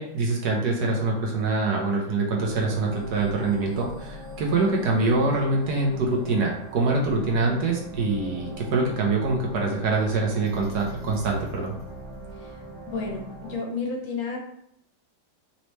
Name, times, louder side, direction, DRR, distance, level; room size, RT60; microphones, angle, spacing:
voice 1, 0.0-11.7, right 3 dB, 65° right, -1 dB, 1.2 m, -24 dB
sound 1, 2.4-13.6, equal, 35° right, 1.4 m, -41 dB
voice 2, 12.9-14.4, left 4 dB, 75° left, 0 dB, 1.7 m, -31 dB
4.1 x 3.0 x 3.2 m, 0.71 s
omnidirectional pair, 2.1 m